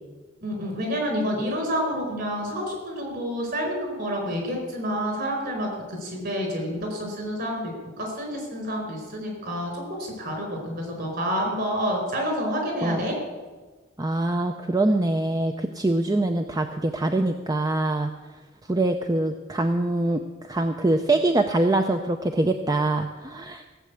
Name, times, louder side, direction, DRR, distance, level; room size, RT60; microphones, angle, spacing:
voice 1, 0.4-13.1, equal, 50° right, 2 dB, 4.8 m, -29 dB
voice 2, 14.0-18.1 18.7-23.7, right 2 dB, 20° right, 6 dB, 0.6 m, -24 dB
16.0 x 7.6 x 8.3 m, 1.3 s
head